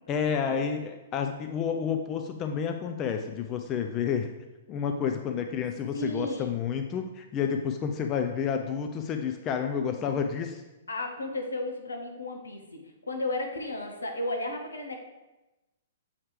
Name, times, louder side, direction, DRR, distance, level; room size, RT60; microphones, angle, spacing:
voice 1, 0.1-4.3 4.7-10.6, left 7 dB, 30° left, 5 dB, 0.4 m, -30 dB
voice 2, 5.9-6.5 9.9-10.1 10.9-15.0, left 1 dB, 80° left, 3 dB, 1.0 m, -34 dB
7.2 x 3.2 x 4.7 m, 1.0 s
figure-of-eight pair, 115°, 0 cm